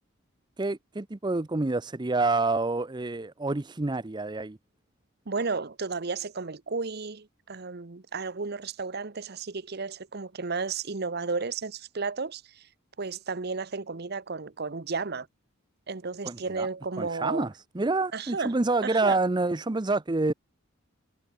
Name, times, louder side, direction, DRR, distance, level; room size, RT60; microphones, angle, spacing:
voice 1, 0.6-4.6 16.2-16.7 17.0-20.3, right 3 dB, 20° right, 0.6 m, -27 dB
voice 2, 5.3-12.7 13.0-15.3 15.9-17.5 18.1-18.6 18.8-19.2, right 4 dB, 50° right, 0.9 m, -33 dB
head